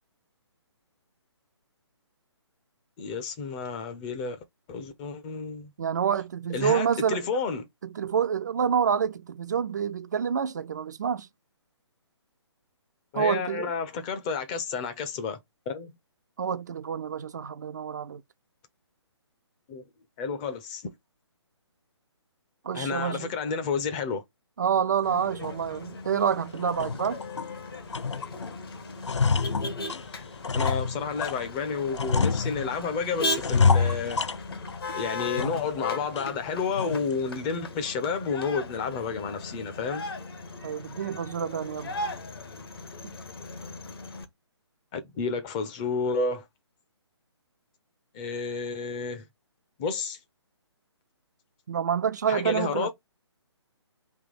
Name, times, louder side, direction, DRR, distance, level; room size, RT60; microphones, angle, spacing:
voice 1, 3.0-4.4 4.7-5.7 6.5-7.6 13.1-15.4 15.7-15.9 19.7-19.8 20.2-20.9 22.7-24.2 30.5-34.2 34.9-40.1 44.9-46.5 48.1-49.3 49.8-50.2 52.3-52.9, left 5 dB, 15° left, 0.5 m, -31 dB
voice 2, 5.8-7.4 7.9-11.3 13.1-13.7 16.4-18.2 22.6-23.3 24.6-27.2 40.6-42.0 43.0-43.2 51.7-52.9, right 7 dB, 40° right, 0.4 m, -28 dB
Motor vehicle (road), 25.0-44.2, left 2 dB, 55° left, 1.1 m, -38 dB
sound 1, 25.4-25.6 26.1-26.2 26.6-27.5 27.9-28.5 28.8-31.4 31.9-32.9 33.4-34.8 35.2-35.8 36.2-36.3 36.8-37.1, left 4 dB, 80° left, 0.4 m, -27 dB
3.4 x 2.8 x 3.9 m
figure-of-eight pair, 140°, 15 cm